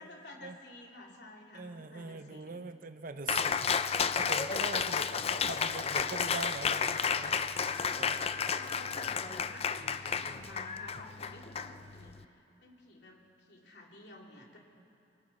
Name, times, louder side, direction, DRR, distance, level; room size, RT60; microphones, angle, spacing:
voice 1, 0.0-2.6 8.1-14.6, left 1 dB, 70° left, -1 dB, 3.2 m, -52 dB
voice 2, 1.5-7.4 8.0-8.2, right 3 dB, 50° right, 10 dB, 0.8 m, -42 dB
Cheering, 3.3-12.2, left 6 dB, 35° left, 0.5 m, -32 dB
28.5 x 24.0 x 4.3 m, 2.7 s
head